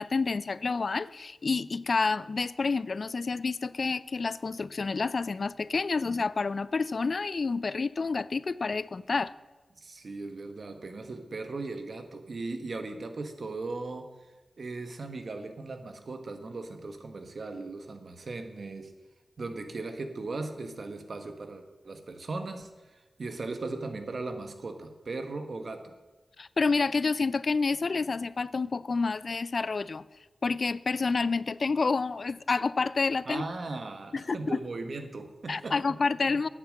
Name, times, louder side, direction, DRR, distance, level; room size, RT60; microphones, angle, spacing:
voice 1, 0.0-9.3 26.4-30.0 30.4-33.4 34.1-34.6 35.5-36.5, left 4 dB, 60° left, 17 dB, 0.4 m, -29 dB
voice 2, 9.8-14.1 14.6-18.9 19.4-25.9 33.3-35.8, right 3 dB, 65° right, 7 dB, 1.3 m, -38 dB
9.1 x 7.5 x 7.5 m, 1.2 s
cardioid pair, 45°, 0 cm